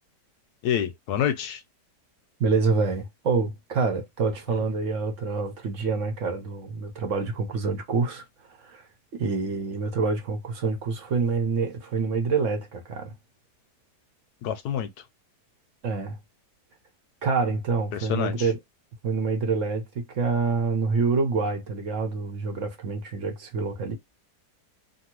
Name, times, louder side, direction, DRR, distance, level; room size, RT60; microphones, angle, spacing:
voice 1, 0.6-1.6 4.5-4.6 14.4-14.9 17.9-18.5, left 9 dB, 75° left, 1.0 m, -27 dB
voice 2, 2.4-8.2 8.6-8.9 9.1-13.1 15.8-16.2 17.2-18.6 19.0-23.9, right 4 dB, 55° right, 1.1 m, -27 dB
2.8 x 2.6 x 2.9 m
omnidirectional pair, 1.8 m